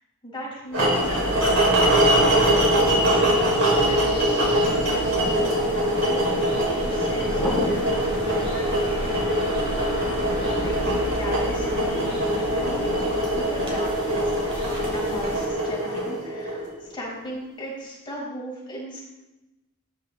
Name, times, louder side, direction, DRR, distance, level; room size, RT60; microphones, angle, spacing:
voice 1, 0.2-1.6 2.0-3.2 3.8-9.3 10.4-19.0, equal, 20° left, -5 dB, 5.2 m, -37 dB
sound 1, 0.7-16.8, right 1 dB, 65° right, 5.6 m, -23 dB
sound 2, 0.9-15.5, equal, 25° right, 5.7 m, -34 dB
sound 3, 1.0-16.1, equal, 5° left, 5.9 m, -38 dB
19.5 x 11.5 x 4.1 m, 0.99 s
head